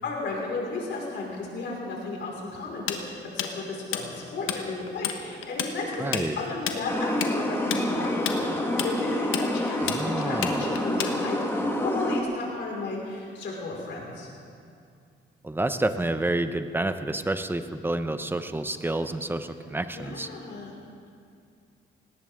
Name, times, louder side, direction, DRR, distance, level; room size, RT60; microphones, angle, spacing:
voice 1, 0.0-3.0 3.3-14.3 19.9-20.7, left 3 dB, 65° left, -3 dB, 4.9 m, -34 dB
Tools, 2.9-4.6 4.9-5.2 5.4-11.5, left 9 dB, 90° left, 1.2 m, -30 dB
voice 2, 6.0-6.4 9.7-10.7 15.4-20.3, right 2 dB, 10° right, 10 dB, 0.8 m, -29 dB
sound 1, 6.9-12.2, left 1 dB, 10° left, 1.8 m, -28 dB
18.5 x 18.0 x 3.7 m, 2.4 s
cardioid pair, 90°, 20 cm